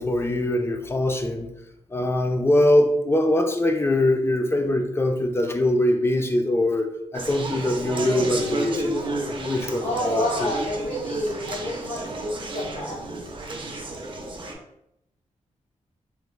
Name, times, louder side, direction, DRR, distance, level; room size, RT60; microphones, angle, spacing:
voice 1, 0.0-1.5 1.9-9.0 9.4-10.5, left 1 dB, 20° left, 5 dB, 0.3 m, -22 dB
Conversation, 7.1-14.5, right 2 dB, 45° right, 0.5 m, -32 dB
voice 2, 9.8-13.1, left 1 dB, 65° left, -4 dB, 1.4 m, -29 dB
3.3 x 3.1 x 2.2 m, 0.82 s
wide cardioid pair, 130°, 12 cm